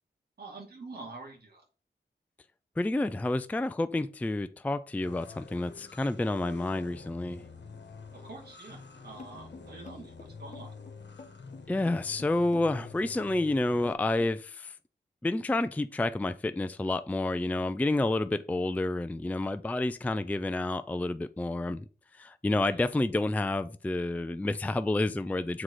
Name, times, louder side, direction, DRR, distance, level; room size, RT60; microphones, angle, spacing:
voice 1, 0.4-1.6 8.1-10.7 22.7-22.9, right 3 dB, 60° right, 2.5 m, -46 dB
voice 2, 2.8-7.4 11.7-14.7 15.2-21.8 22.2-25.6, left 2 dB, 10° left, 0.3 m, -29 dB
sound 1, 5.0-13.9, left 4 dB, 75° left, 1.1 m, -48 dB
sound 2, 9.2-14.3, left 3 dB, 45° left, 1.0 m, -49 dB
7.5 x 4.8 x 4.0 m
wide cardioid pair, 125°, 18 cm